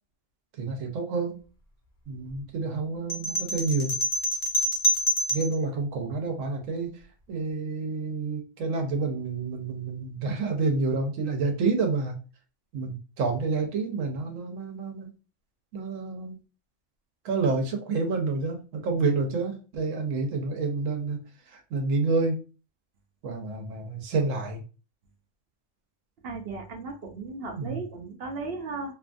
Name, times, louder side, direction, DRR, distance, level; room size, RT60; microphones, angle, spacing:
voice 1, 0.6-1.4 2.1-3.9 5.3-6.9 7.3-12.2 12.7-15.1 15.7-16.4 17.2-21.2 21.5-22.4 23.2-24.6 27.5-27.8, right 4 dB, 80° right, 4 dB, 1.1 m, -28 dB
sound 1, 3.1-5.6, equal, 45° left, 0.9 m, -26 dB
voice 2, 26.2-28.9, right 3 dB, 60° right, 3 dB, 0.7 m, -36 dB
2.8 x 2.3 x 2.5 m, 0.35 s
omnidirectional pair, 1.3 m